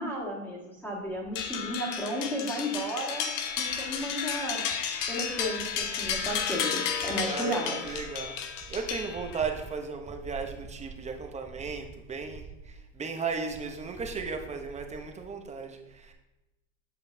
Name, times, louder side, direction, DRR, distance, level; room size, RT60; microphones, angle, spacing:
voice 1, 0.0-3.3 3.6-4.6 5.1-7.8, equal, 5° left, -5 dB, 2.0 m, -33 dB
sound 1, 1.4-9.5, left 7 dB, 70° left, 1.1 m, -33 dB
voice 2, 7.3-8.4 8.7-16.1, right 5 dB, 15° right, 4 dB, 0.8 m, -35 dB
7.8 x 6.9 x 2.7 m, 0.98 s
supercardioid pair, 115°, 39 cm